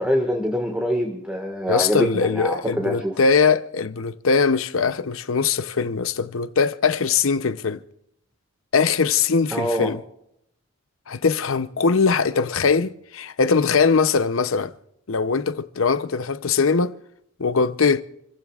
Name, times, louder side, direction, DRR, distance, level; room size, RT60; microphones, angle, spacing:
voice 1, 0.0-3.2 9.5-9.9, equal, 5° right, 1.7 m, -24 dB
voice 2, 1.7-7.8 8.7-10.0 11.1-14.7 15.1-16.9 17.4-18.0, left 5 dB, 75° left, 0.7 m, -21 dB
28.5 x 15.5 x 2.4 m
head